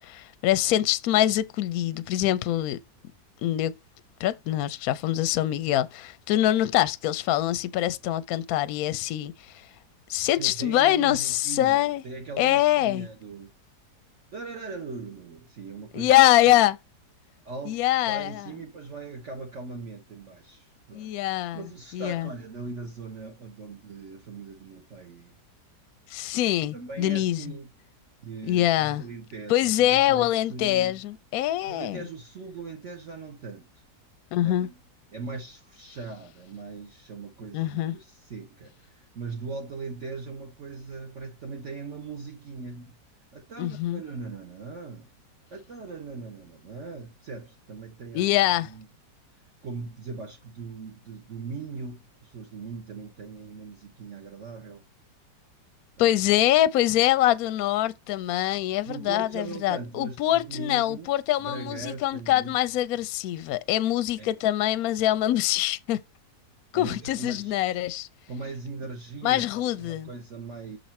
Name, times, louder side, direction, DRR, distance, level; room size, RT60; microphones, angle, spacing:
voice 1, 0.0-2.8 3.4-3.7 4.2-9.7 10.1-12.0 12.4-13.1 15.9-16.8 17.7-18.5 20.9-21.6 21.9-22.3 26.1-27.5 28.5-29.0 29.5-32.0 34.3-34.7 37.5-38.0 43.6-44.0 48.1-48.7 56.0-66.0 66.7-68.1 69.2-70.1, left 14 dB, 70° left, 0.9 m, -24 dB
voice 2, 10.4-13.5 14.3-16.1 16.5-16.6 17.4-21.1 21.5-25.4 26.7-27.7 28.2-31.0 31.7-33.7 34.4-34.8 35.1-42.9 43.3-45.1 45.5-48.2 48.6-48.9 49.6-54.8 56.0-56.2 58.8-61.1 61.4-62.6 64.2-64.4 66.7-67.8 68.3-70.8, right 4 dB, 50° right, 1.2 m, -40 dB
6.5 x 4.0 x 4.2 m
omnidirectional pair, 1.9 m